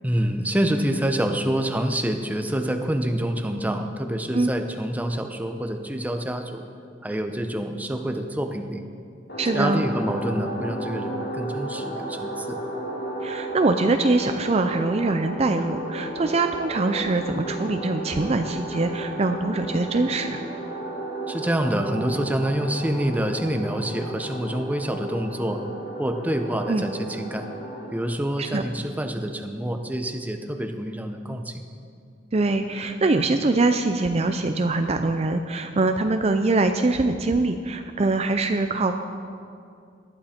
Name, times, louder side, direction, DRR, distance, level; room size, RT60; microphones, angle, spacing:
voice 1, 0.0-6.6 7.0-8.8 9.5-12.6 21.3-25.6 26.0-27.5 27.9-31.6, right 1 dB, 10° right, 5 dB, 0.8 m, -27 dB
sound 1, 9.3-27.9, right 1 dB, 65° left, 2.9 m, -33 dB
voice 2, 9.4-9.8 13.2-20.4 26.7-26.9 28.4-28.6 32.3-38.9, right 3 dB, 35° right, 7 dB, 0.5 m, -23 dB
18.5 x 11.5 x 4.4 m, 2.4 s
head